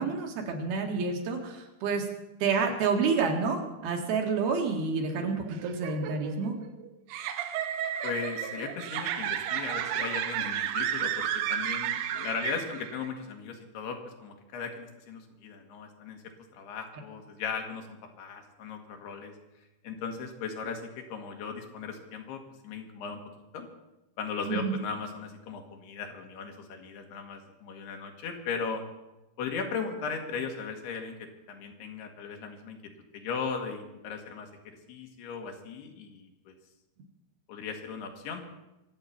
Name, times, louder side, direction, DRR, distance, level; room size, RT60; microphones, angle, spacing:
voice 1, 0.0-2.1 2.4-6.5 24.5-24.7, right 5 dB, 75° right, 2 dB, 3.7 m, -29 dB
sound 1, 5.5-13.1, right 10 dB, 90° right, 3.0 m, -32 dB
voice 2, 8.0-16.2 16.5-17.9 18.2-19.4 19.8-23.2 23.5-23.7 24.2-28.8 29.4-36.6 37.5-38.4, left 5 dB, 85° left, 4 dB, 3.6 m, -37 dB
24.0 x 8.2 x 5.8 m, 1.0 s
omnidirectional pair, 4.6 m